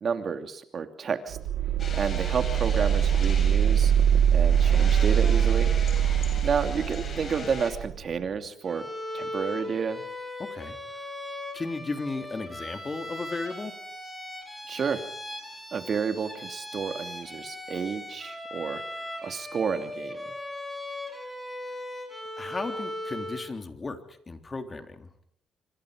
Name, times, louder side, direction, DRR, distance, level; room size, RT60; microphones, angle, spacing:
voice 1, 0.0-1.4 2.0-3.9 4.3-5.7 6.4-8.9 9.1-10.0 14.7-15.0 15.7-18.8 19.2-20.2, right 6 dB, 50° right, 7 dB, 2.8 m, -30 dB
sound 1, 1.3-8.0, right 9 dB, 80° right, 1.6 m, -23 dB
sound 2, 1.8-7.7, left 4 dB, 45° left, 7.9 m, -39 dB
voice 2, 6.0-6.4 10.4-11.0 11.5-13.7 22.4-24.0 24.3-25.1, left 3 dB, 30° left, 7 dB, 3.2 m, -35 dB
Bowed string instrument, 8.7-23.5, left 1 dB, 5° left, 6.8 m, -38 dB
26.5 x 25.0 x 5.1 m, 0.65 s
cardioid pair, 90°, 0 cm